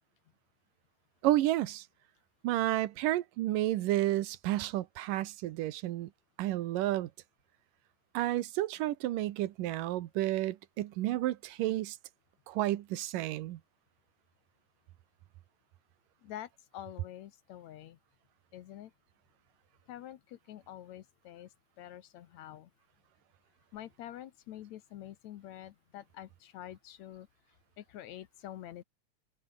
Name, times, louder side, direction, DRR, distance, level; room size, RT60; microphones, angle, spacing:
voice 1, 1.2-1.9 2.4-6.1 6.4-7.1 8.1-12.0 12.5-13.6, right 15 dB, 90° right, 2.7 m, -31 dB
voice 2, 16.2-18.0 18.5-18.9 19.9-21.5 21.8-22.7 23.7-27.3 27.8-28.8, left 12 dB, 65° left, 2.0 m, -47 dB
omnidirectional pair, 3.8 m